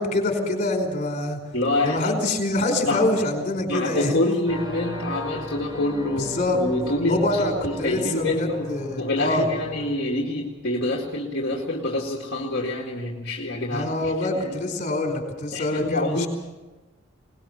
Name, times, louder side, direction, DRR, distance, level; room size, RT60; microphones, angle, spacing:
voice 1, 0.0-1.4 1.8-4.2 6.2-6.6 7.1-7.5 7.8-9.4 13.7-16.3, left 2 dB, 35° left, 3 dB, 4.8 m, -25 dB
voice 2, 1.5-2.1 2.8-3.3 3.7-14.6 15.5-16.2, left 1 dB, 55° left, -2 dB, 2.2 m, -27 dB
sound 1, 4.5-9.9, equal, 20° right, 3.2 m, -37 dB
22.5 x 20.0 x 7.2 m, 1.2 s
head